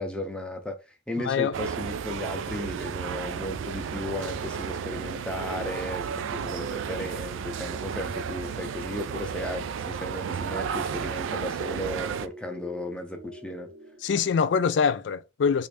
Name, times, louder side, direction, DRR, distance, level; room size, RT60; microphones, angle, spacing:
voice 1, 0.0-13.7, left 1 dB, 5° left, 0.6 m, -35 dB
voice 2, 1.2-1.5 14.0-15.7, left 6 dB, 60° left, 0.3 m, -24 dB
sound 1, 1.5-12.3, right 7 dB, 75° right, 0.3 m, -33 dB
sound 2, 2.5-14.4, equal, 50° right, 0.8 m, -48 dB
3.2 x 2.6 x 3.3 m
head